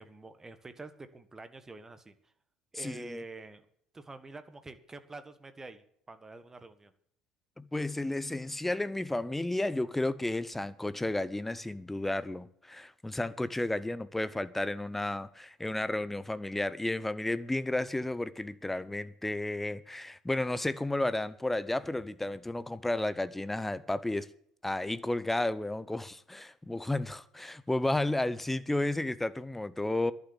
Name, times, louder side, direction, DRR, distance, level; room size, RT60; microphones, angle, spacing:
voice 1, 0.0-2.1 2.7-3.6 3.9-6.9, right 3 dB, 20° right, 1.4 m, -47 dB
voice 2, 2.7-3.2 7.6-24.3 24.6-30.1, left 2 dB, 10° left, 0.7 m, -32 dB
11.5 x 6.9 x 9.6 m
figure-of-eight pair, 65°, 2 cm